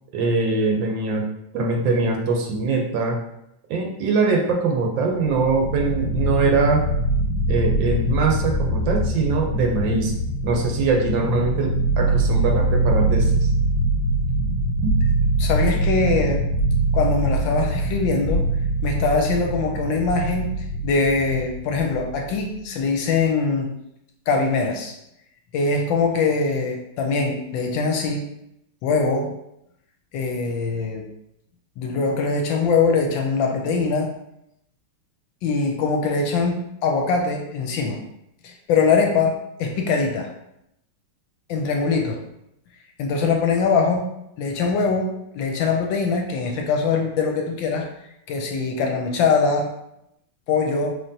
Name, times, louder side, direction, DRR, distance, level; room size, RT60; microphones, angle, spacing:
voice 1, 0.1-1.3 1.5-3.2 3.7-6.8 7.5-10.1 10.4-13.5 14.8-15.0, right 3 dB, 75° right, 1 dB, 1.2 m, -22 dB
sound 1, 5.1-22.5, right 1 dB, 55° left, 0.5 m, -23 dB
voice 2, 15.4-16.5 16.9-18.5 18.8-23.7 24.3-24.9 25.5-28.3 28.8-29.3 30.1-31.1 31.8-34.1 35.4-38.0 38.4-40.3 41.5-42.2 43.0-47.9 48.3-49.7 50.5-51.0, left 4 dB, 75° left, 2 dB, 1.2 m, -22 dB
4.3 x 3.2 x 2.7 m, 0.80 s
omnidirectional pair, 2.3 m